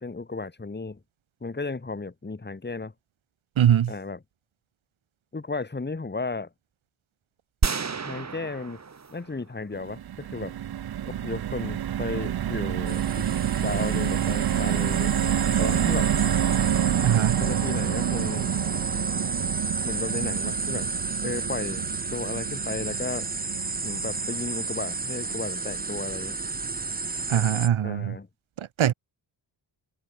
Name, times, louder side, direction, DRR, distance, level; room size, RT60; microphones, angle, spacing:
voice 1, 0.0-1.0 1.4-2.9 3.9-4.2 5.3-6.5 8.0-8.8 9.1-10.5 11.1-13.3 13.6-15.1 15.6-16.1 17.4-18.5 19.8-20.9 21.2-21.8 22.1-23.3 23.8-26.4 27.8-28.3, left 3 dB, 20° left, 2.2 m, -34 dB
voice 2, 3.6-3.9 17.0-17.4 27.3-28.2 28.6-28.9, right 10 dB, 85° right, 1.8 m, -22 dB
sound 1, 7.6-9.9, right 5 dB, 35° right, 1.6 m, -30 dB
sound 2, 9.7-26.0 26.4-26.6 26.8-27.1, right 10 dB, 55° right, 0.7 m, -28 dB
sound 3, 12.9-27.7, right 4 dB, 20° right, 0.9 m, -32 dB
cardioid pair, 90°, 47 cm